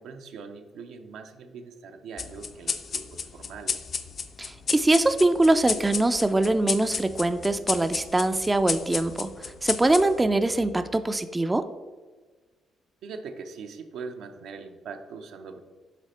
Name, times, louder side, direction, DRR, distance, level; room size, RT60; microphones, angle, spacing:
voice 1, 0.0-3.9 13.0-15.6, right 5 dB, 80° right, 6 dB, 0.6 m, -41 dB
sound 1, 2.2-11.1, left 5 dB, 50° left, 0.5 m, -33 dB
voice 2, 4.4-11.7, right 2 dB, 15° right, 10 dB, 0.3 m, -23 dB
8.2 x 3.3 x 4.2 m, 1.3 s
cardioid pair, 90°, 0 cm